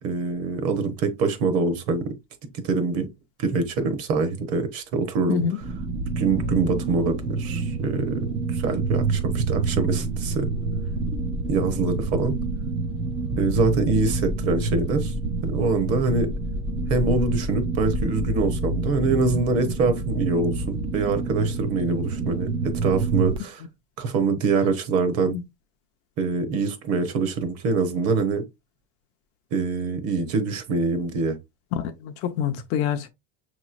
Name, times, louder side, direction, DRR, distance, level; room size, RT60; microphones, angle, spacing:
voice 1, 0.0-2.1 2.6-3.1 3.4-5.4 6.2-10.5 11.5-12.3 13.4-15.1 15.4-16.3 16.9-23.6 24.0-25.4 26.2-28.4 29.5-31.4, right 4 dB, 45° right, 0.9 m, -24 dB
sound 1, 5.6-23.4, right 3 dB, 15° right, 0.3 m, -27 dB
voice 2, 31.7-33.1, left 8 dB, 45° left, 0.5 m, -26 dB
6.3 x 3.0 x 2.4 m
cardioid pair, 165°, 34 cm